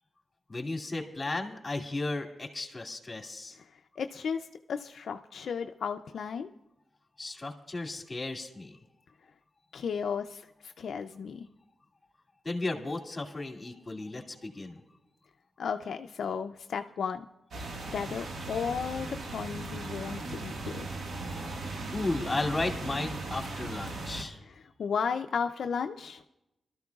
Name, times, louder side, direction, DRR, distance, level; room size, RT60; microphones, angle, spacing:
voice 1, 0.5-3.6 7.2-8.7 12.4-14.8 21.9-24.4, left 2 dB, 30° left, 2 dB, 2.5 m, -34 dB
voice 2, 4.0-6.5 9.7-11.5 15.6-17.3 17.9-20.9 24.5-24.6 24.8-26.2, left 6 dB, 80° left, 6 dB, 0.4 m, -34 dB
sound 1, 17.5-24.2, right 2 dB, 75° right, 1.6 m, -38 dB
24.5 x 13.5 x 2.4 m, 0.91 s
cardioid pair, 70°, 0 cm